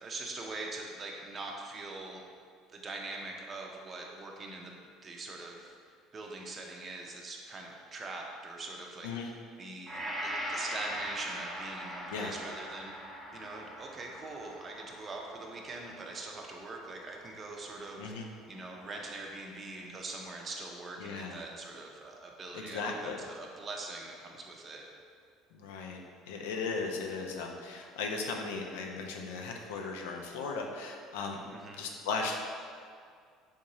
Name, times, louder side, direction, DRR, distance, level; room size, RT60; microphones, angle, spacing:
voice 1, 0.0-2.2 2.7-4.7 5.0-5.7 6.1-12.9 13.3-18.1 18.5-24.9 31.5-31.8, right 2 dB, 35° right, 0 dB, 0.5 m, -43 dB
Gong, 9.9-18.2 18.6-18.7, equal, 5° left, 0.9 m, -42 dB
voice 2, 21.0-21.4 22.5-23.2 25.5-26.0 26.3-31.4 31.8-32.4, left 4 dB, 90° left, 1 dB, 0.4 m, -37 dB
3.5 x 2.7 x 3.0 m, 2.1 s
supercardioid pair, 95°, 0 cm